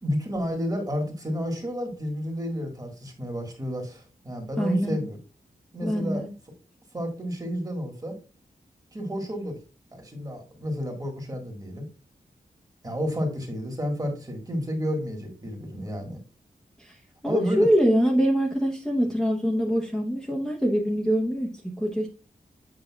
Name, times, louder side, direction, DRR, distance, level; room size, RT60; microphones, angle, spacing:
voice 1, 0.0-5.2 5.7-6.2 6.9-8.2 8.9-9.6 9.9-11.8 12.8-16.2 17.2-17.7, equal, 25° right, 3 dB, 1.7 m, -31 dB
voice 2, 4.6-5.0 5.8-6.3 16.8-17.0 17.2-21.5 21.8-22.1, equal, ahead, -3 dB, 0.9 m, -24 dB
7.8 x 5.1 x 2.3 m, 0.33 s
wide cardioid pair, 100°, 15 cm